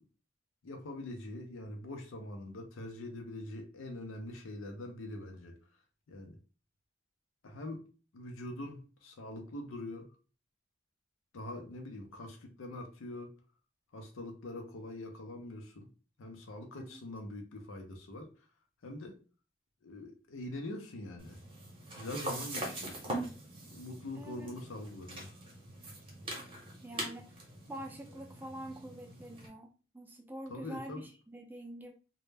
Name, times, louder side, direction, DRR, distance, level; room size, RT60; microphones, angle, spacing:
voice 1, 0.6-5.6 6.1-6.4 7.4-7.8 8.1-10.1 11.3-13.3 13.9-15.9 16.2-18.5 18.8-19.1 19.8-21.4 21.9-23.0 23.7-25.3 30.5-31.0, left 1 dB, 85° left, 4 dB, 0.5 m, -43 dB
sound 1, 21.2-29.5, right 1 dB, 25° right, 0.8 m, -43 dB
voice 2, 24.2-24.5 26.8-27.4 27.7-31.9, right 1 dB, 10° right, 2 dB, 0.4 m, -46 dB
2.1 x 2.0 x 3.2 m, 0.36 s
head